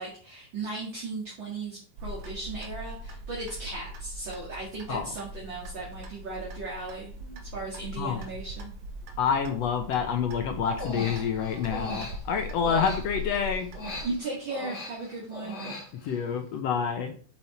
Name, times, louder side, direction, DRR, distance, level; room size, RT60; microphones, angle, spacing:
voice 1, 0.0-8.7 14.0-15.6, right 3 dB, 40° right, -3 dB, 2.7 m, -36 dB
Clock, 2.0-14.1, equal, 70° right, 2.6 m, -41 dB
voice 2, 9.2-13.7 16.0-17.1, left 7 dB, 65° left, 6 dB, 1.9 m, -28 dB
Human voice, 10.7-13.4 13.7-16.2, equal, 35° left, 2.6 m, -38 dB
7.5 x 7.3 x 4.4 m, 0.43 s
omnidirectional pair, 3.6 m